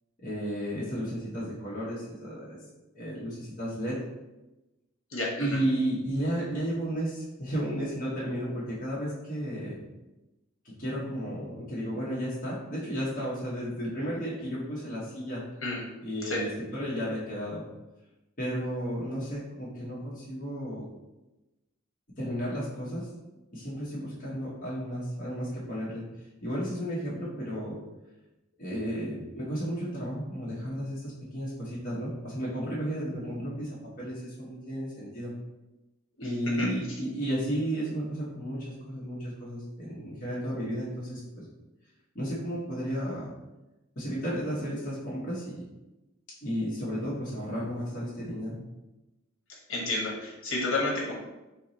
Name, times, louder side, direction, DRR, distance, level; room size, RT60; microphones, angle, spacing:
voice 1, 0.2-2.6 2.9-4.0 5.4-9.8 10.6-15.4 16.0-17.6 18.4-20.9 22.2-23.1 23.5-26.1 26.4-27.8 28.6-33.7 34.0-35.3 36.2-41.4 42.1-43.3 44.0-45.6 46.4-48.6, equal, 40° left, -8 dB, 0.9 m, -33 dB
voice 2, 5.1-5.6 15.6-15.8 16.2-16.4 36.2-36.3 36.6-36.7 49.5-51.1, left 2 dB, 65° left, -2 dB, 1.1 m, -31 dB
4.4 x 2.0 x 3.9 m, 1.0 s
head